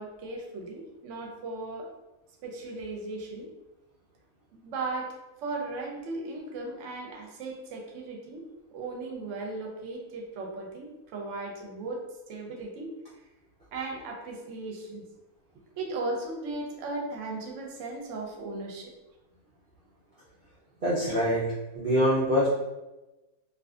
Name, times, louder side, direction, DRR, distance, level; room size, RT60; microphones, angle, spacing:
voice 1, 0.0-1.9 2.4-3.5 4.5-5.1 5.4-8.4 8.7-12.0 12.3-12.9 13.7-15.0 15.8-18.9, right 2 dB, 65° right, 0 dB, 0.8 m, -36 dB
voice 2, 20.8-22.5, equal, 85° right, -9 dB, 0.4 m, -25 dB
2.5 x 2.3 x 2.3 m, 1.0 s
omnidirectional pair, 1.6 m